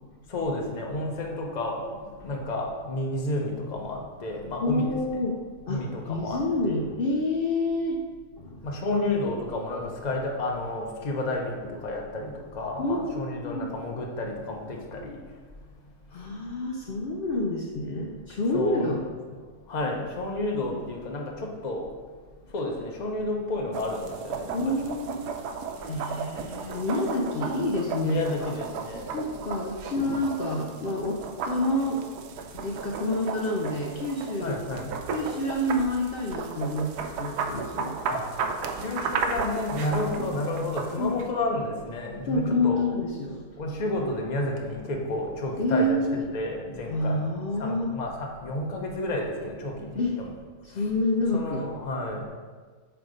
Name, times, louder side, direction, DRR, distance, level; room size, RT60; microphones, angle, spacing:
voice 1, 0.3-5.2 5.7-6.8 8.6-15.2 18.5-19.0 19.7-21.8 22.5-24.5 28.0-29.1 34.4-34.9 38.1-38.2 38.7-42.8 43.6-47.2 47.6-50.3 50.8-50.9 51.3-52.3, left 2 dB, 35° left, 0 dB, 0.8 m, -31 dB
voice 2, 4.6-5.4 5.7-5.8 6.1-8.0 8.4-8.6 12.8-13.7 16.1-19.0 24.5-25.2 25.9-28.5 29.1-32.1 32.5-34.6 35.1-38.0 40.2-40.3 41.0-41.2 42.3-43.4 45.6-46.3 46.9-48.0 50.0-50.2 50.6-51.7, left 1 dB, 75° left, 0 dB, 0.5 m, -28 dB
sound 1, 23.7-41.3, right 5 dB, 85° right, 1.2 m, -34 dB
8.0 x 3.4 x 5.0 m, 1.5 s
omnidirectional pair, 1.7 m